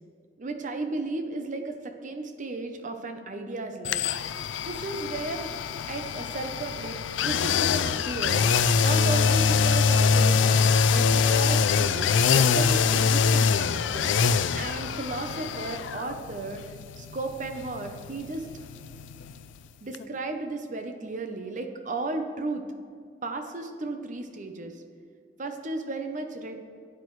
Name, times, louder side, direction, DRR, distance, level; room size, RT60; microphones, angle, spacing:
voice 1, 0.4-4.1 4.6-5.5 5.9-8.5 8.8-14.1 14.6-16.6 17.0-18.5 19.8-22.6 23.2-24.8 25.4-26.6, right 3 dB, 45° right, 6 dB, 0.7 m, -34 dB
sound 1, 3.8-19.7 19.9-20.0, left 5 dB, 85° left, 0.4 m, -24 dB
12.0 x 9.2 x 3.2 m, 2.2 s
head